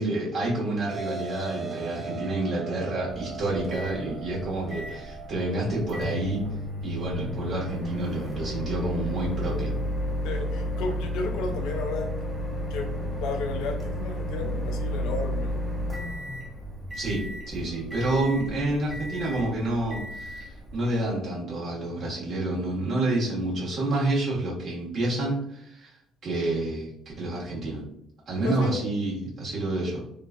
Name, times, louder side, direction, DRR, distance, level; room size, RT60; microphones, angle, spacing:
voice 1, 0.0-6.4 6.8-9.7 16.9-25.9 26.2-26.9 27.2-27.8 28.3-30.0, right 2 dB, 50° right, -6 dB, 1.5 m, -28 dB
sound 1, 0.9-6.5, right 4 dB, 35° right, 0.4 m, -39 dB
Microwave oven, 3.1-21.1, equal, 15° right, 1.4 m, -33 dB
voice 2, 10.2-12.1 12.7-12.9 13.2-15.7 28.4-28.8, left 3 dB, 70° left, 3 dB, 0.4 m, -33 dB
3.1 x 2.3 x 2.4 m, 0.75 s
hypercardioid pair, 55°, 0 cm